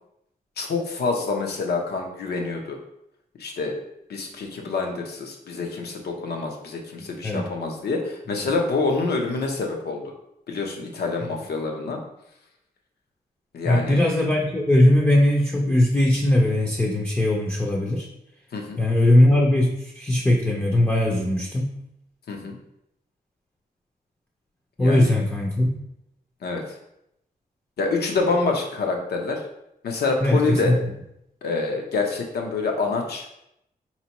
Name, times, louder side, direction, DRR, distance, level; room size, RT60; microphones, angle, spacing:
voice 1, 0.6-2.8 3.4-3.8 4.1-10.1 10.5-12.0 13.5-14.0 18.5-18.8 22.3-22.6 24.8-25.1 26.4-26.6 27.8-29.4 29.8-30.7 31.4-33.3, left 3 dB, 90° left, 2 dB, 0.7 m, -26 dB
voice 2, 13.6-18.1 18.8-21.7 24.8-25.7 30.2-30.8, left 1 dB, 10° left, -2 dB, 0.4 m, -20 dB
4.3 x 2.9 x 2.9 m, 0.81 s
wide cardioid pair, 155°, 16 cm